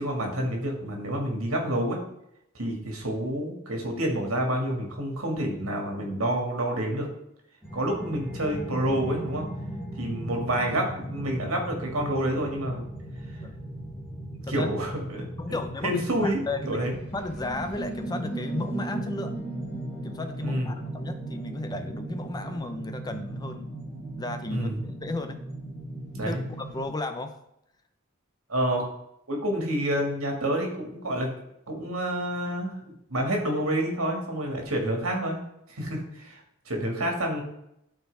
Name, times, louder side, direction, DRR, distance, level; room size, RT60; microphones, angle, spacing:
voice 1, 0.0-2.0 2.5-7.1 7.7-9.5 10.0-12.8 14.5-16.9 20.4-20.7 24.5-24.7 26.1-26.4 28.5-28.8 29.3-31.3 31.7-35.4 35.7-37.4, right 1 dB, 85° right, 1 dB, 2.0 m, -28 dB
sound 1, 7.6-26.8, right 1 dB, 5° right, 3.2 m, -37 dB
voice 2, 15.4-16.8 17.1-19.3 20.0-23.7 24.2-25.4 26.2-27.3, left 2 dB, 20° left, 8 dB, 0.6 m, -34 dB
12.5 x 4.5 x 3.4 m, 0.79 s
head